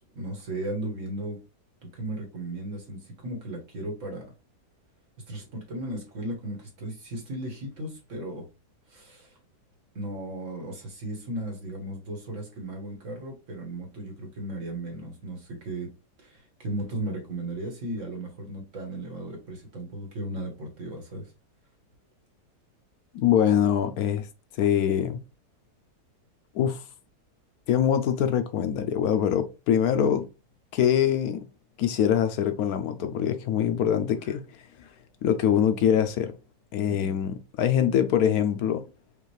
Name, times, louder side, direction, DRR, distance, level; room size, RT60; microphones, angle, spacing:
voice 1, 0.0-1.4 1.8-4.3 5.3-8.5 8.9-9.3 9.9-15.9 16.2-21.3 36.9-37.1, right 1 dB, 55° right, 1.6 m, -36 dB
voice 2, 23.2-24.3 24.6-25.2 26.5-26.8 27.7-30.3 30.7-31.5 31.8-34.4 34.8-34.9 35.2-36.3 36.7-38.8, left 9 dB, 75° left, 1.0 m, -24 dB
5.3 x 2.4 x 3.2 m
omnidirectional pair, 1.7 m